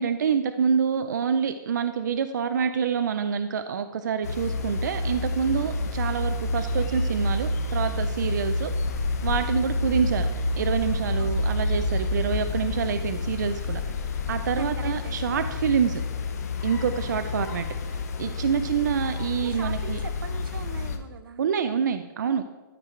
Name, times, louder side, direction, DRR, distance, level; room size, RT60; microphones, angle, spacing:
voice 1, 0.0-8.7 9.2-10.3 10.6-13.8 14.3-16.0 16.6-17.7 18.2-20.0 21.4-22.4, right 7 dB, 55° right, 9 dB, 0.4 m, -26 dB
sound 1, 4.2-21.0, left 2 dB, 45° left, 0.8 m, -29 dB
voice 2, 14.6-15.2 16.7-17.0 19.4-21.4, right 6 dB, 70° right, 10 dB, 0.8 m, -41 dB
12.5 x 4.7 x 4.4 m, 1.2 s
hypercardioid pair, 180°, 12 cm